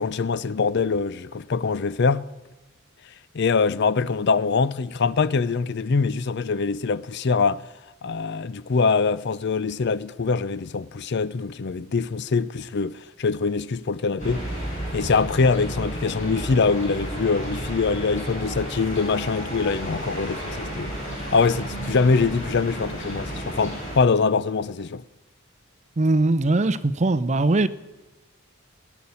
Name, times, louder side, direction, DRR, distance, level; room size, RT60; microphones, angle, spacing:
voice 1, 0.0-2.3 3.3-7.7 8.0-14.4 14.9-20.9 21.3-25.0, left 4 dB, 50° left, 0.5 m, -23 dB
sound 1, 14.2-24.0, right 1 dB, 35° left, 6.0 m, -32 dB
voice 2, 26.0-27.7, right 2 dB, 30° right, 0.5 m, -20 dB
18.5 x 7.1 x 9.6 m
head